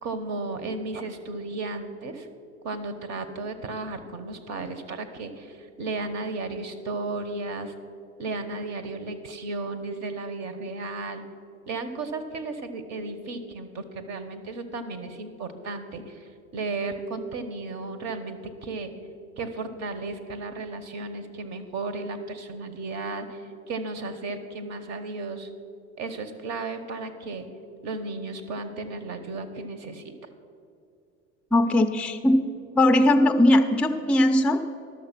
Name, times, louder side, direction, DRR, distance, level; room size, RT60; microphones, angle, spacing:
voice 1, 0.0-2.3 2.6-7.7 8.2-11.2 11.7-18.9 19.4-25.5 26.0-27.5 27.8-30.0, right 3 dB, 40° right, 10 dB, 1.2 m, -34 dB
voice 2, 31.5-32.4 32.7-34.6, left 1 dB, 5° left, 4 dB, 0.5 m, -19 dB
12.0 x 6.5 x 5.9 m, 2.5 s
hypercardioid pair, 85°, 41 cm